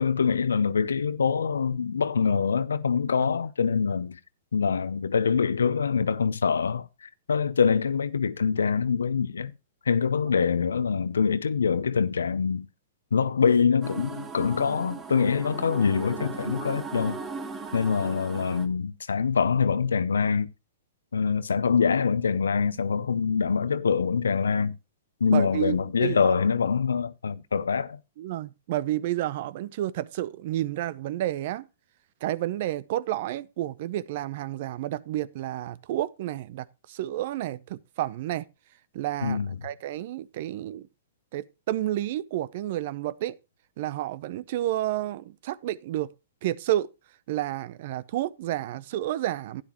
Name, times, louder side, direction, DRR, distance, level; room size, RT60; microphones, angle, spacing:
voice 1, 0.0-4.2 4.5-9.5 9.9-12.7 13.1-17.2 17.7-20.5 21.1-24.8 25.2-28.0 39.2-39.5, left 6 dB, 85° left, 0.6 m, -24 dB
sound 1, 13.8-18.7, right 5 dB, 20° right, 1.4 m, -38 dB
voice 2, 25.3-26.3 28.2-31.7 32.2-38.5 38.9-39.4 39.6-40.9 41.3-43.4 43.8-46.1 46.4-46.9 47.3-49.6, right 13 dB, 55° right, 0.6 m, -30 dB
12.0 x 9.9 x 3.0 m
hypercardioid pair, 120°, 0 cm